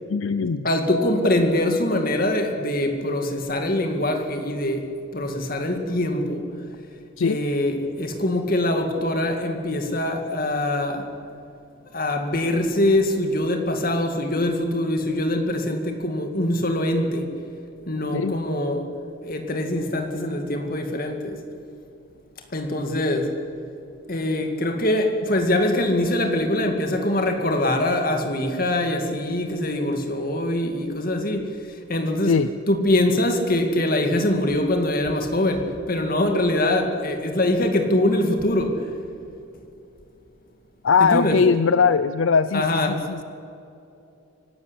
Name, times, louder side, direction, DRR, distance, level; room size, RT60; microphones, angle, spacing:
voice 1, 0.1-0.7 7.2-7.4 18.1-18.4 32.2-32.5 40.8-43.2, left 5 dB, 70° left, 13 dB, 0.5 m, -20 dB
voice 2, 0.6-6.5 7.2-11.1 11.9-17.3 17.9-18.9 19.2-21.4 22.5-23.3 24.1-31.6 31.9-32.4 32.7-38.9 41.0-41.4 42.5-43.0, left 1 dB, 45° left, 5 dB, 2.3 m, -23 dB
24.0 x 12.5 x 9.8 m, 2.8 s
head